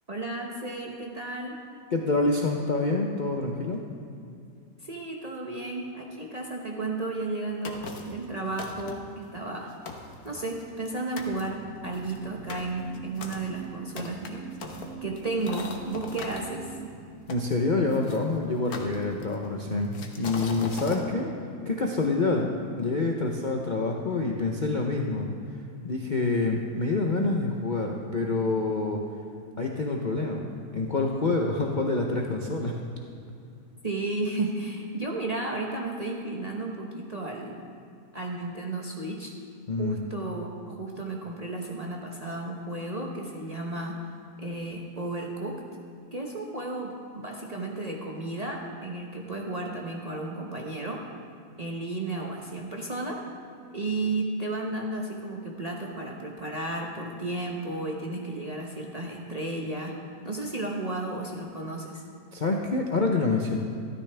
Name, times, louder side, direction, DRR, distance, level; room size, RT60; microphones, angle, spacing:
voice 1, 0.1-1.6 4.8-9.7 10.2-14.4 15.0-16.8 33.8-37.7 38.1-39.3 39.8-44.0 44.4-45.6 46.1-51.0 51.6-53.2 53.7-60.0 60.2-62.0, right 2 dB, 30° right, -1 dB, 0.7 m, -33 dB
voice 2, 1.9-3.8 17.3-21.3 21.6-25.3 25.8-29.0 29.6-32.8 39.7-40.0 62.3-63.6, left 3 dB, 45° left, 0 dB, 0.6 m, -27 dB
sound 1, 7.6-8.2 8.6-9.1 9.6-9.7 9.9-10.9 11.2-11.4 11.9-16.4 17.3-18.2 18.7-19.5 19.9-21.0, left 4 dB, 65° left, 1.4 m, -39 dB
sound 2, 11.2-18.0, right 6 dB, 75° right, 1.3 m, -44 dB
13.5 x 12.5 x 3.4 m, 2.4 s
omnidirectional pair, 1.8 m